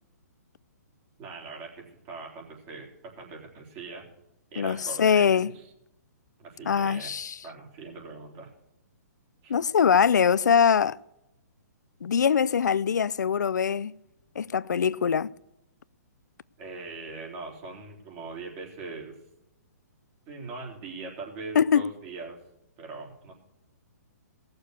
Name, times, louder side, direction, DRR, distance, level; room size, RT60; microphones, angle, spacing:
voice 1, 1.2-4.1 4.5-5.6 6.4-7.1 7.4-8.5 9.4-9.5 16.6-19.1 20.3-22.4 22.8-23.3, right 3 dB, 30° right, 3.9 m, -41 dB
voice 2, 4.6-5.5 6.7-7.4 9.5-11.0 12.0-13.9 14.4-15.3 21.6-21.8, left 7 dB, 90° left, 0.4 m, -23 dB
18.0 x 6.7 x 6.7 m
hypercardioid pair, 145°, 9 cm